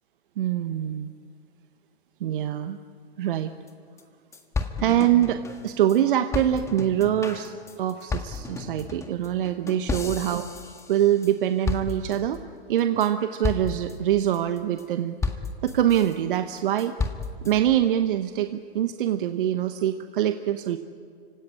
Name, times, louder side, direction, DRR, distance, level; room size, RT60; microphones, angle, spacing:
voice 1, 0.4-1.1 2.2-2.8 3.2-3.5 4.8-7.5 7.8-12.4 12.7-15.2 15.6-16.9 17.4-20.8, right 11 dB, 50° right, 9 dB, 1.1 m, -24 dB
sound 1, 3.7-3.8 4.0-4.1 4.3-6.0 6.3-11.3 11.6-12.4 12.8-13.1 13.4-13.9 14.3-14.8 15.2-16.1 16.6-17.5, left 4 dB, 10° left, 1.6 m, -32 dB
29.0 x 17.0 x 9.9 m, 2.2 s
hypercardioid pair, 125°, 33 cm